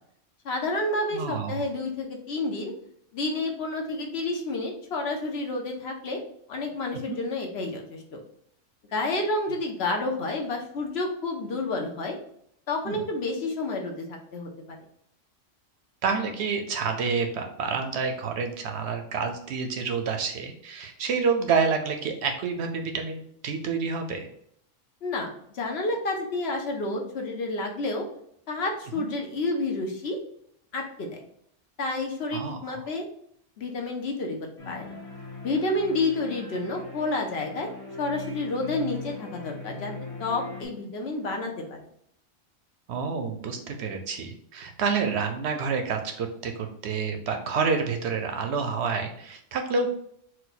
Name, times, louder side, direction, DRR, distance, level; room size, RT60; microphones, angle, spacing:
voice 1, 0.4-2.7 3.1-6.2 6.5-8.2 8.9-12.2 12.7-14.8 25.0-28.1 28.5-30.2 30.7-31.2 31.8-33.0 33.6-35.0 35.4-37.7 38.0-41.8, left 2 dB, 60° left, 2 dB, 0.9 m, -30 dB
voice 2, 1.1-1.6 6.9-7.2 12.9-13.0 16.0-24.3 28.9-29.1 32.3-32.9 42.9-49.9, right 5 dB, 70° right, 5 dB, 0.8 m, -28 dB
sound 1, 34.6-40.6, left 3 dB, 30° left, 1.0 m, -40 dB
4.2 x 2.2 x 4.0 m, 0.68 s
omnidirectional pair, 1.3 m